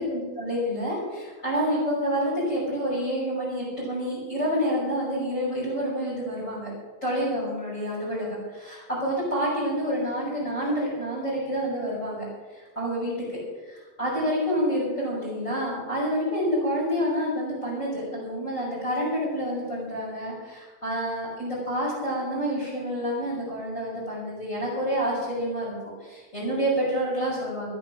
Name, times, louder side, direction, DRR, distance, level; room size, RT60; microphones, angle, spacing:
voice 1, 0.0-6.7 7.0-12.3 12.5-25.7 26.0-27.7, equal, 20° left, -9 dB, 6.4 m, -28 dB
13.5 x 11.0 x 7.5 m, 1.3 s
omnidirectional pair, 3.7 m